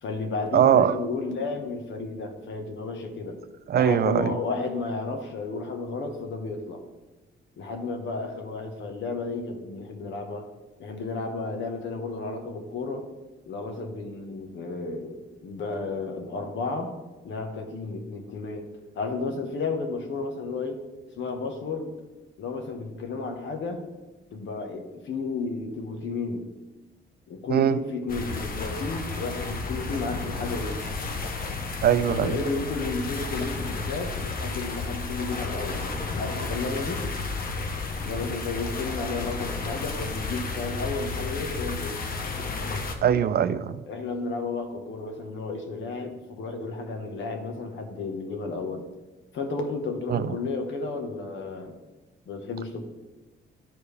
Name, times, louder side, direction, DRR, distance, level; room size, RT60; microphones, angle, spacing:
voice 1, 0.0-3.4 3.7-6.8 7.6-10.5 10.8-13.1 13.5-16.9 17.2-18.7 18.9-20.8 21.2-22.0 22.4-23.8 24.3-26.5 27.3-30.8 32.1-35.9 36.2-37.0 38.0-42.0 43.9-48.8 49.3-51.8 52.3-52.8, left 3 dB, 70° left, 4 dB, 1.3 m, -32 dB
voice 2, 0.5-1.0 3.7-4.3 27.5-27.8 31.8-32.4 43.0-43.8 50.1-50.4, right 9 dB, 50° right, 13 dB, 0.4 m, -21 dB
sound 1, 28.1-42.9, left 3 dB, 45° left, 1.0 m, -32 dB
12.5 x 4.6 x 3.4 m, 1.2 s
cardioid pair, 90°, 20 cm